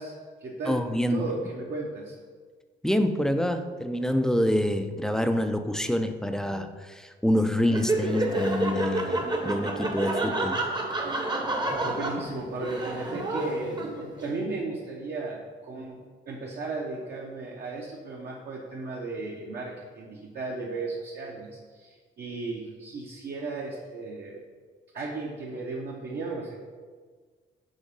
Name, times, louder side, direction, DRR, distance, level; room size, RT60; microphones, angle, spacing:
voice 1, 0.0-0.8 1.1-2.1 11.6-16.0 16.3-24.4 24.9-26.6, right 3 dB, 55° right, -3 dB, 0.9 m, -35 dB
voice 2, 0.7-1.3 2.8-10.6, left 1 dB, 5° left, 8 dB, 0.4 m, -26 dB
Laughter, 7.7-14.2, right 2 dB, 20° right, 0.8 m, -29 dB
5.3 x 3.7 x 5.3 m, 1.5 s
cardioid pair, 90°, 20 cm